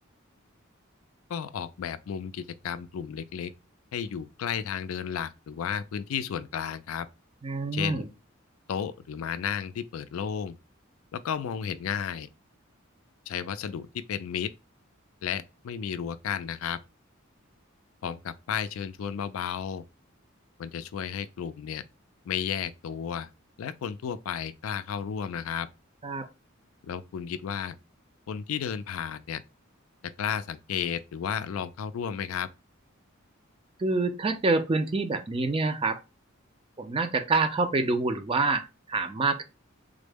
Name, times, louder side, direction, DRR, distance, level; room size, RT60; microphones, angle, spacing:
voice 1, 1.3-3.5 3.9-7.1 7.7-8.0 8.7-10.6 11.1-12.3 13.3-14.5 15.2-16.8 18.0-19.8 20.6-21.8 22.3-23.3 23.6-25.7 26.8-27.8 28.3-29.4 30.2-32.5, left 8 dB, 75° left, 0.3 m, -33 dB
voice 2, 7.4-8.1 26.0-26.3 33.8-36.0 36.8-39.4, right 3 dB, 25° right, 0.4 m, -26 dB
3.6 x 2.0 x 3.3 m
head